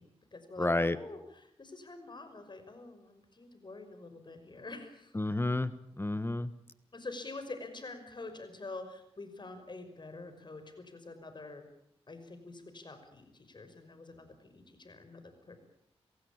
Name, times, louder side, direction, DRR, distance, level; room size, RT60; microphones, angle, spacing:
voice 1, 0.0-5.1 6.9-11.6 12.1-15.6, left 3 dB, 45° left, 8 dB, 5.6 m, -47 dB
voice 2, 0.6-1.0 5.1-6.5, left 2 dB, 20° left, 14 dB, 1.3 m, -30 dB
27.5 x 16.5 x 8.8 m, 0.73 s
cardioid pair, 70°, 11 cm